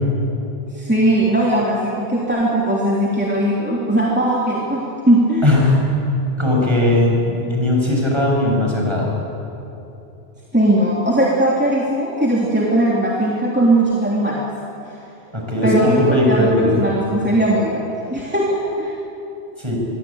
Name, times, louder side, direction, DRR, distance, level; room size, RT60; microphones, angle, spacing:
voice 1, 0.7-5.4 10.5-14.4 15.6-18.9, right 1 dB, 10° right, -4 dB, 3.2 m, -19 dB
voice 2, 5.4-5.8 6.4-9.1 15.3-16.7 19.6-19.8, left 1 dB, 25° right, -2 dB, 6.9 m, -18 dB
26.0 x 23.0 x 8.8 m, 3.0 s
omnidirectional pair, 1.1 m